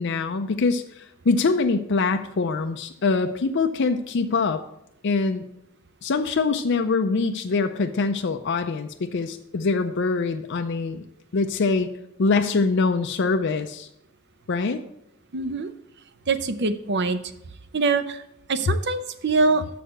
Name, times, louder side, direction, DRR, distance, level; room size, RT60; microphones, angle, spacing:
voice 1, 0.0-4.6 5.0-5.4 6.0-11.0 11.3-11.9 12.2-13.9 14.5-14.8, left 4 dB, 55° left, 7 dB, 0.5 m, -24 dB
voice 2, 15.3-15.7 16.3-17.2 17.7-18.2 18.5-19.7, right 3 dB, 50° right, 11 dB, 0.6 m, -23 dB
6.9 x 6.5 x 6.4 m, 0.80 s
head